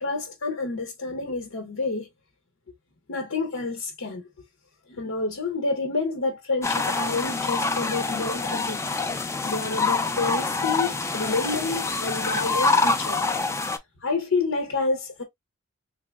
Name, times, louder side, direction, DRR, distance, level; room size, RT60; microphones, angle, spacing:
voice 1, 0.0-2.1 3.1-4.2 4.9-8.8 9.4-13.2 14.0-15.2, left 3 dB, 80° left, 0.7 m, -29 dB
sound 1, 6.6-13.8, left 3 dB, 15° left, 0.3 m, -26 dB
3.4 x 2.9 x 2.3 m
head